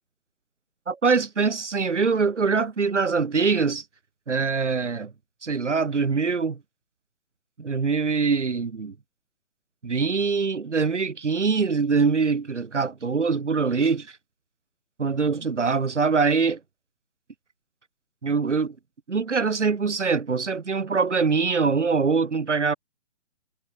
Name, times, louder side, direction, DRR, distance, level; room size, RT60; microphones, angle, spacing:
voice 1, 0.9-3.8 4.3-5.1 5.4-6.6 7.6-8.9 9.8-14.2 15.0-16.6 18.2-18.7 19.1-22.7, right 5 dB, 75° right, 4.3 m, -23 dB
figure-of-eight pair, 145°, 36 cm